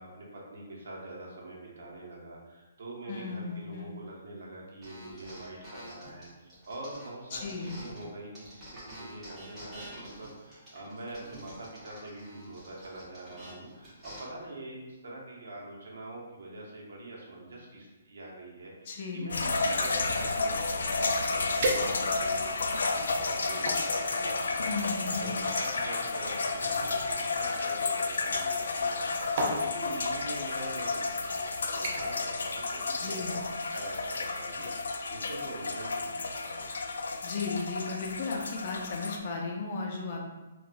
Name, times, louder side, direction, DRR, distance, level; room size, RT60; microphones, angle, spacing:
voice 1, 0.0-24.7 25.1-36.7, right 2 dB, 70° right, -3 dB, 0.9 m, -44 dB
voice 2, 3.1-4.0 7.3-7.8 18.9-19.5 24.6-25.5 32.9-33.4 37.2-40.2, left 4 dB, 40° left, 0 dB, 0.5 m, -35 dB
sound 1, 4.8-8.1 8.3-14.2, right 1 dB, 10° right, 0.9 m, -48 dB
sound 2, 19.3-39.2, left 3 dB, 90° left, 0.3 m, -31 dB
sound 3, 21.6-22.4 23.0-23.9 24.8-27.7 28.8-29.0 29.4-29.7 30.6-30.7 31.1-31.4 31.8-32.2 32.6-32.9 33.3-33.4, right 2 dB, 40° right, 0.5 m, -35 dB
4.2 x 2.3 x 2.2 m, 1.2 s
hypercardioid pair, 170°, 0 cm